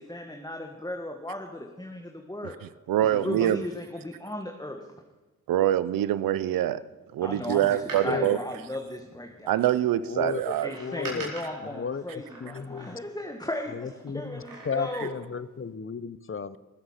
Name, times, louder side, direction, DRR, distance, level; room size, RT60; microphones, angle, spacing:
voice 1, 0.0-2.5 3.1-4.8 7.2-9.6 10.6-15.1, left 1 dB, 10° left, 3 dB, 1.6 m, -36 dB
voice 2, 2.6-3.6 5.5-6.8 7.1-8.4 9.5-10.7, right 12 dB, 90° right, 16 dB, 0.6 m, -25 dB
Door, 7.7-9.5 10.4-13.3 14.2-15.4 15.7-15.8, right 2 dB, 70° right, 4.4 m, -44 dB
voice 3, 8.0-8.4 10.1-11.3 11.6-13.0 13.7-16.6, left 6 dB, 40° left, 16 dB, 0.7 m, -34 dB
19.5 x 7.9 x 5.8 m, 1.2 s
supercardioid pair, 40°, 33 cm